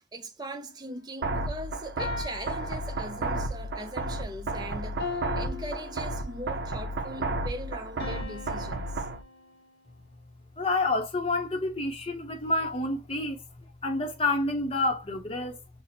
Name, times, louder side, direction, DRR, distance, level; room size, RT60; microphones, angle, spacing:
voice 1, 0.1-9.1, right 1 dB, 25° right, 0.5 m, -40 dB
sound 1, 1.2-9.2, right 2 dB, 75° right, 0.5 m, -33 dB
sound 2, 2.0-3.6 5.0-6.7 8.0-9.9, left 4 dB, 65° left, 0.6 m, -40 dB
voice 2, 10.6-13.3 13.8-15.5, left 2 dB, 30° left, 0.7 m, -28 dB
5.7 x 2.0 x 2.7 m
head